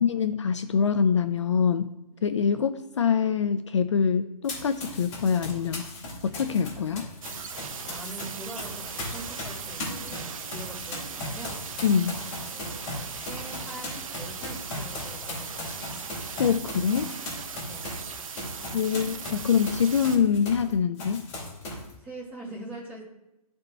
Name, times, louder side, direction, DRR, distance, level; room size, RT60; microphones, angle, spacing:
voice 1, 0.0-1.9 2.2-5.8 6.2-7.1 11.8-12.2 16.4-17.1 18.7-21.3, left 7 dB, 50° left, 10 dB, 0.4 m, -24 dB
Run, 4.4-8.2 8.6-20.7 21.0-21.9, left 2 dB, 25° left, 2.8 m, -38 dB
sound 1, 7.2-20.2, right 6 dB, 60° right, 0.8 m, -38 dB
voice 2, 7.8-11.6 12.4-15.6 17.7-17.9 22.0-23.0, right 1 dB, 10° right, -5 dB, 1.5 m, -43 dB
12.5 x 4.2 x 3.3 m, 0.93 s
hypercardioid pair, 170°, 20 cm